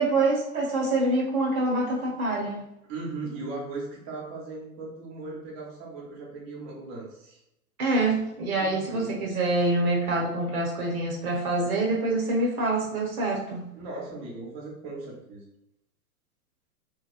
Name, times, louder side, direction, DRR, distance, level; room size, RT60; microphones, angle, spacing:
voice 1, 0.0-2.6 7.8-13.7, right 2 dB, 70° right, -1 dB, 1.1 m, -26 dB
voice 2, 2.9-7.4 8.5-9.2 13.7-15.4, right 3 dB, 30° right, -4 dB, 0.8 m, -38 dB
2.9 x 2.1 x 2.4 m, 0.82 s
hypercardioid pair, 130°, 45 cm